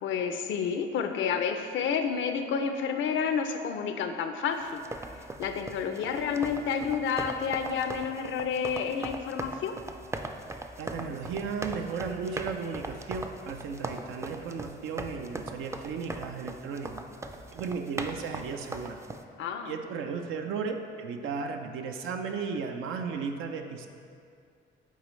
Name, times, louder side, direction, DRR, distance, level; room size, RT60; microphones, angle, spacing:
voice 1, 0.0-4.8 5.1-9.7 19.4-19.8, left 6 dB, 75° left, 7 dB, 0.5 m, -30 dB
sound 1, 4.7-19.2, right 2 dB, 15° right, 0.3 m, -39 dB
voice 2, 10.8-17.0 17.5-19.0 19.7-23.9, right 5 dB, 85° right, 4 dB, 0.5 m, -35 dB
8.3 x 4.1 x 3.1 m, 2.4 s
cardioid pair, 90°, 20 cm